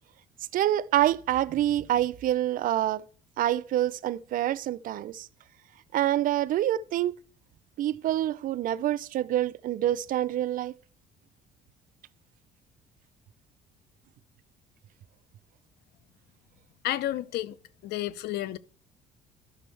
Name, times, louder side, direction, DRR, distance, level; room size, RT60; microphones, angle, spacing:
voice 1, 0.5-3.1 3.4-5.3 5.9-7.1 7.8-10.7, right 13 dB, 55° right, 0.4 m, -26 dB
voice 2, 16.8-17.6 17.8-18.6, left 14 dB, 75° left, 0.5 m, -31 dB
12.0 x 6.1 x 3.2 m
cardioid pair, 110°, 17 cm